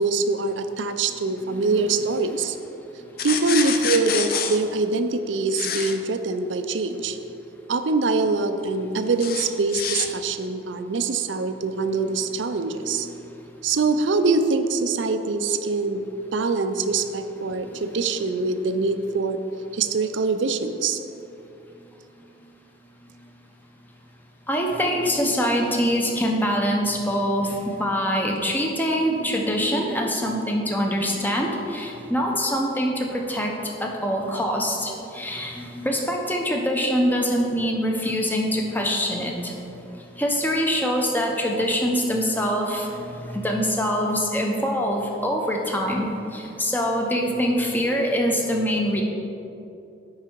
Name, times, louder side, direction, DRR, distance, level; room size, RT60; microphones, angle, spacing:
voice 1, 0.0-2.6 3.2-7.2 7.7-13.1 13.6-16.0 16.3-19.4 19.7-21.0, right 3 dB, 90° right, 9 dB, 0.5 m, -24 dB
voice 2, 1.5-1.9 24.5-33.5 33.8-39.6 40.2-49.0, equal, 10° left, 0 dB, 0.8 m, -24 dB
sound 1, 3.2-4.6 5.5-5.9 9.2-10.1, left 7 dB, 50° left, 0.6 m, -27 dB
10.5 x 4.7 x 4.6 m, 2.8 s
head